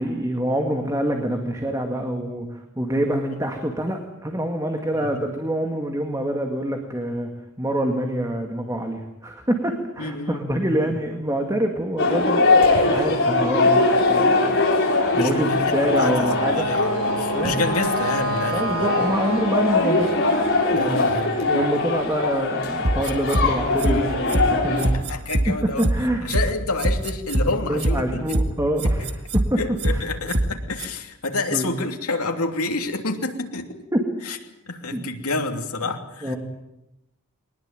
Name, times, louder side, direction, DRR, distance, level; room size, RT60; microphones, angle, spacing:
voice 1, 0.0-7.3 7.6-12.5 12.9-14.4 15.2-16.7 17.3-17.6 18.5-21.1 21.5-25.2 25.8-26.3 27.7-29.6 29.9-30.0 31.5-31.7 33.9-34.0 34.9-35.0 36.2-36.4, right 1 dB, 15° right, 3 dB, 2.1 m, -26 dB
voice 2, 10.0-10.4 10.8-11.0 15.1-16.2 16.5-19.0 20.7-21.4 24.9-25.9 26.2-28.2 29.6-33.8 34.2-34.4 34.7-36.3, left 3 dB, 75° left, 4 dB, 3.0 m, -28 dB
sound 1, 12.0-24.9, left 3 dB, 55° left, 5.6 m, -21 dB
Wind instrument woodwind instrument, 15.9-20.8, right 1 dB, 75° right, 2.3 m, -29 dB
sound 2, 22.8-23.4 23.8-23.9 24.3-24.4 24.8-25.4 25.8-25.9 26.3-26.4 26.8-27.4 27.8-27.9 28.3-28.4 28.8-29.4 29.8-29.9 30.3-30.4 30.8-30.9, right 1 dB, 50° right, 2.0 m, -21 dB
22.5 x 20.0 x 9.2 m, 0.90 s
head